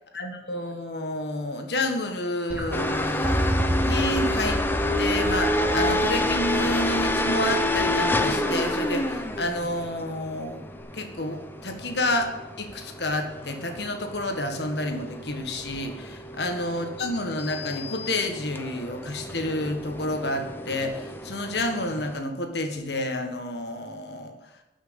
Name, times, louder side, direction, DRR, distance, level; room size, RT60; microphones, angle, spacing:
voice 1, 0.1-4.6 5.0-10.7 10.9-12.3 12.6-24.3, left 1 dB, 65° left, 5 dB, 1.7 m, -29 dB
sound 1, 2.5-9.7 10.8-10.9, equal, 5° right, 2.9 m, -31 dB
sound 2, 2.7-22.2, left 1 dB, 10° left, 0.8 m, -29 dB
11.5 x 6.3 x 8.8 m, 1.1 s
head